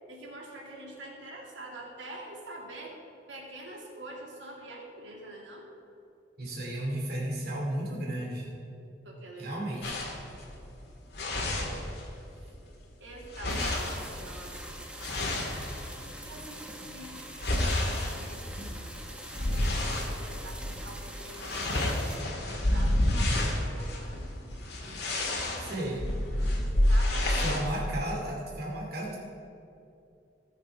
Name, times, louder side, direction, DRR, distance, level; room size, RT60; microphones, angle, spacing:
voice 1, 0.1-3.0 3.3-5.7 9.0-9.9 11.3-11.9 12.4-12.5 13.0-14.7 16.2-18.7 19.3-21.6 22.4-24.4 26.9-27.7, right 1 dB, 80° right, -2 dB, 2.3 m, -46 dB
voice 2, 6.4-8.5 9.4-10.0 25.6-26.0 27.4-29.2, right 1 dB, 55° right, -3 dB, 2.4 m, -33 dB
sound 1, 9.8-12.3 12.6-16.3 16.8-20.1 20.6-20.8 21.1-27.6, left 1 dB, 60° left, 2.0 m, -30 dB
sound 2, 13.5-22.2, right 1 dB, 5° right, 0.9 m, -44 dB
18.5 x 7.3 x 3.5 m, 2.6 s
head